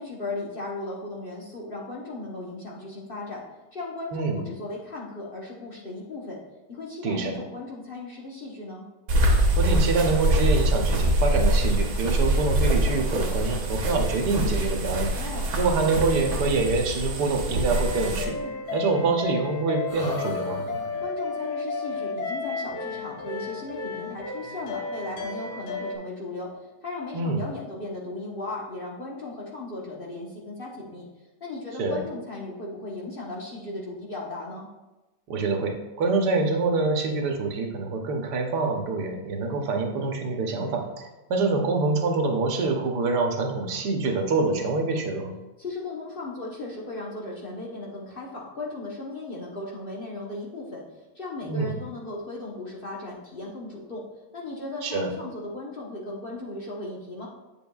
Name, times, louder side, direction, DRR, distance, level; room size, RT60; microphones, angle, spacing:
voice 1, 0.0-3.5 3.7-6.4 6.7-8.9 15.1-15.5 18.4-18.5 21.0-31.1 31.4-34.7 45.6-54.0 54.3-57.3, left 2 dB, 40° left, -3 dB, 1.0 m, -36 dB
voice 2, 4.1-4.4 7.0-7.4 9.6-18.4 18.7-20.6 27.1-27.4 31.8-32.0 35.3-45.3 51.5-51.8 54.8-55.1, right 3 dB, 80° right, 3 dB, 1.4 m, -26 dB
sound 1, 9.1-18.2, right 1 dB, 60° right, 1.4 m, -24 dB
sound 2, 16.1-17.3 18.6-19.5 19.9-21.1, left 1 dB, 20° left, 1.6 m, -38 dB
sound 3, 17.7-25.9, left 4 dB, 70° left, 1.4 m, -33 dB
8.4 x 7.1 x 2.3 m, 1.1 s
omnidirectional pair, 1.8 m